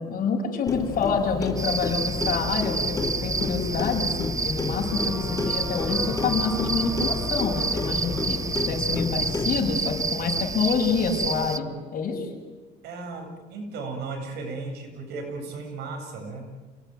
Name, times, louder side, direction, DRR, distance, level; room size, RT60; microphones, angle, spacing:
voice 1, 0.0-11.7 11.9-12.3, left 5 dB, 55° left, -1 dB, 6.5 m, -27 dB
Clock, 0.7-9.8, left 4 dB, 20° left, 2.7 m, -31 dB
sound 1, 1.6-11.6, right 4 dB, 20° right, 0.8 m, -30 dB
sound 2, 4.8-10.0, equal, ahead, 3.2 m, -40 dB
voice 2, 12.8-16.5, right 3 dB, 80° right, 3 dB, 7.9 m, -35 dB
28.5 x 19.0 x 9.4 m, 1.3 s
cardioid pair, 110°, 17 cm